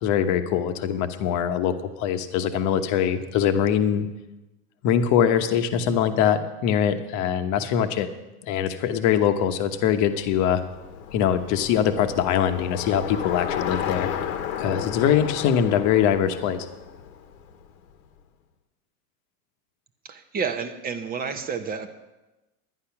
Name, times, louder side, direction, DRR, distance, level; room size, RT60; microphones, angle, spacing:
voice 1, 0.0-4.1 4.8-8.1 8.5-10.6 11.1-14.1 14.6-16.7, left 9 dB, 40° left, 9 dB, 1.1 m, -23 dB
Bicycle, 9.6-17.9, left 8 dB, 70° left, 1.4 m, -33 dB
voice 2, 20.0-21.9, right 6 dB, 20° right, 7 dB, 0.8 m, -30 dB
12.0 x 9.8 x 5.9 m, 1.0 s
supercardioid pair, 130°, 44 cm